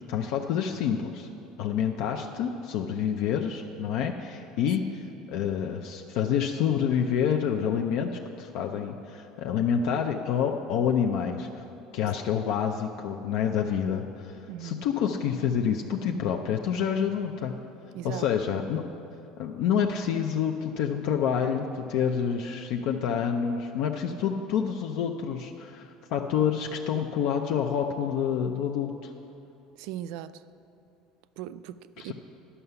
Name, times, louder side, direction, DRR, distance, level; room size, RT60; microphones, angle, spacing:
voice 1, 0.1-1.3 1.6-8.1 8.4-11.6 11.9-17.5 18.0-18.9 19.4-29.1 32.1-32.2, left 8 dB, 65° left, 3 dB, 0.5 m, -28 dB
voice 2, 14.5-14.9 17.9-18.3 29.8-30.4 31.4-32.1, right 12 dB, 70° right, 14 dB, 0.3 m, -38 dB
11.0 x 5.6 x 6.9 m, 2.8 s
cardioid pair, 155°, 0 cm